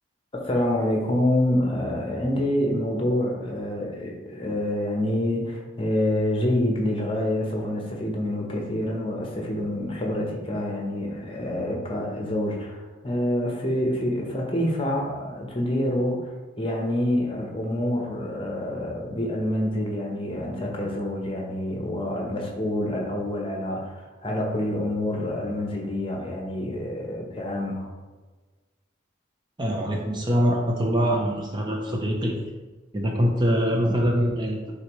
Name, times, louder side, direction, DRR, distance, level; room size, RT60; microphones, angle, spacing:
voice 1, 0.3-16.3 16.6-27.9, left 1 dB, 25° left, 0 dB, 1.0 m, -27 dB
voice 2, 29.6-32.4 32.9-34.6, equal, 20° right, 0 dB, 0.7 m, -23 dB
9.7 x 3.9 x 3.2 m, 1.3 s
head